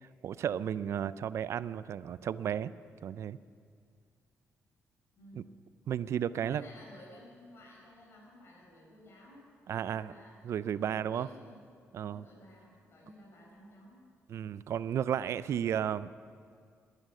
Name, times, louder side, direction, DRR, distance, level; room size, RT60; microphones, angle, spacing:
voice 1, 0.2-2.7 3.0-3.4 5.3-5.4 5.9-6.6 9.7-10.1 10.4-11.3 11.9-12.2 14.3-16.1, right 9 dB, 65° right, 17 dB, 0.4 m, -33 dB
voice 2, 5.2-5.6 6.3-9.4 9.7-11.6 12.0-14.1, left 1 dB, 55° left, -2 dB, 4.9 m, -55 dB
12.5 x 10.0 x 9.3 m, 2.2 s
cardioid pair, 90°, 5 cm